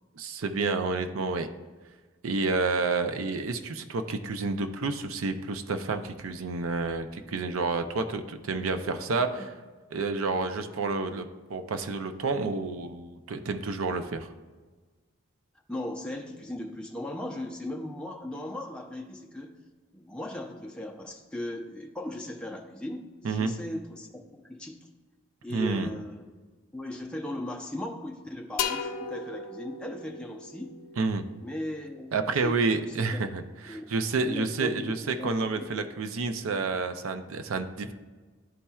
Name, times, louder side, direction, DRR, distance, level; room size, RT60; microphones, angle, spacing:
voice 1, 0.2-1.5 2.2-9.4 9.9-14.3 23.2-23.5 25.5-25.9 31.0-31.2 32.1-37.9, right 3 dB, 75° right, 8 dB, 0.5 m, -29 dB
voice 2, 8.9-9.4 15.7-19.5 19.9-24.9 25.4-26.2 26.7-30.7 31.4-33.2 33.7-33.8 34.3-35.7, left 1 dB, 5° left, 1 dB, 0.5 m, -38 dB
sound 1, 28.6-32.2, left 6 dB, 90° left, 0.5 m, -37 dB
11.0 x 4.2 x 2.3 m, 1.4 s
head